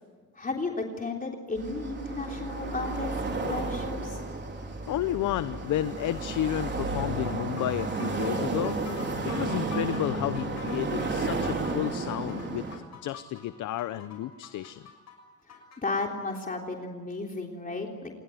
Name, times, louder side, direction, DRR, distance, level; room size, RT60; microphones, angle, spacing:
voice 1, 0.3-4.2 15.5-18.1, left 3 dB, 30° left, 1 dB, 3.5 m, -34 dB
sound 1, 1.6-12.8, right 3 dB, 35° right, 4.4 m, -32 dB
voice 2, 4.9-8.8 9.2-12.7 13.0-14.8, left 13 dB, 80° left, 13 dB, 0.9 m, -31 dB
sound 2, 7.2-15.8, left 6 dB, 60° left, 6.4 m, -47 dB
28.5 x 19.5 x 9.3 m, 1.5 s
cardioid pair, 90°, 30 cm